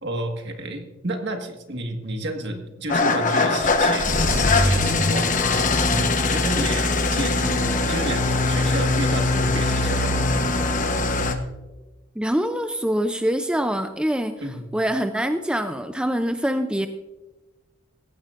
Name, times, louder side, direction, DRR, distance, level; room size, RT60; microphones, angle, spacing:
voice 1, 0.0-10.3 14.4-14.6, right 1 dB, 55° right, 4 dB, 1.6 m, -31 dB
Engine starting / Idling, 2.9-11.3, left 3 dB, 40° left, 1.0 m, -21 dB
voice 2, 12.2-14.4 14.7-16.9, equal, 5° right, 8 dB, 0.4 m, -24 dB
18.0 x 15.0 x 2.5 m, 1.1 s
head